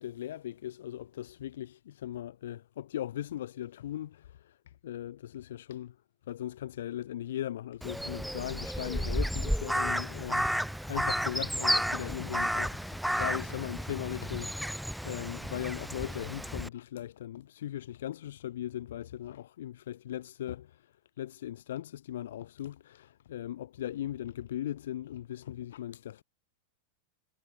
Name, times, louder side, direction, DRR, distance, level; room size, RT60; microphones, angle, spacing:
voice 1, 0.0-5.9 6.3-14.8 15.0-20.9 21.2-26.2, left 12 dB, 60° left, 4.8 m, -39 dB
Crow, 7.8-16.7, equal, ahead, 1.0 m, -32 dB
figure-of-eight pair, 90°, 0 cm